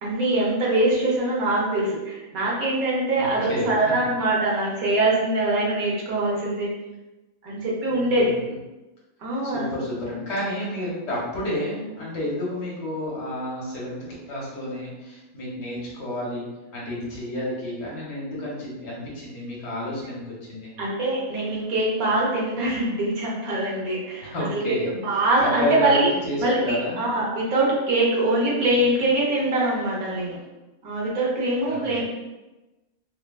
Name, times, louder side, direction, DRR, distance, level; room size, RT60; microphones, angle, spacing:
voice 1, 0.0-6.7 7.4-8.3 9.2-9.6 20.8-24.8 25.0-26.1 26.4-30.4 30.8-32.0, right 2 dB, 90° right, -4 dB, 1.3 m, -23 dB
voice 2, 3.1-3.9 7.9-8.4 9.4-16.5 16.7-20.7 24.2-24.9 25.4-27.0 28.6-29.1 31.7-32.0, left 1 dB, 55° left, -5 dB, 1.2 m, -30 dB
3.2 x 2.2 x 2.2 m, 1.1 s
omnidirectional pair, 1.5 m